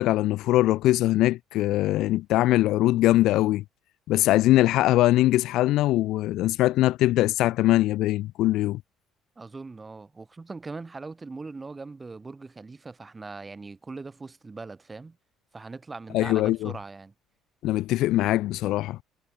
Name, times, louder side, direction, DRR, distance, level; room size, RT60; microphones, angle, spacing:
voice 1, 0.0-3.6 4.1-8.8 16.1-16.7 17.6-19.0, left 16 dB, 60° left, 0.6 m, -22 dB
voice 2, 9.4-15.2 15.5-17.1, right 3 dB, 15° right, 3.3 m, -40 dB
cardioid pair, 180°, 0 cm